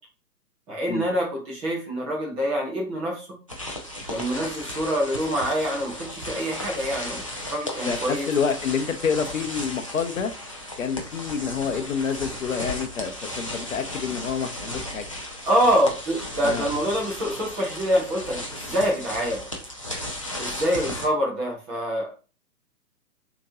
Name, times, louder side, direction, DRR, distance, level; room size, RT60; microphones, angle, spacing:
voice 1, 0.7-3.3 4.1-7.2 7.5-8.3 15.5-19.4 20.4-22.1, equal, 10° right, 0.8 m, -25 dB
sound 1, 3.5-21.1, left 1 dB, 25° left, 0.4 m, -35 dB
voice 2, 7.8-10.3 10.8-15.1 16.4-16.7, left 6 dB, 55° left, 0.7 m, -28 dB
6.2 x 3.0 x 2.7 m
figure-of-eight pair, 130°, 49 cm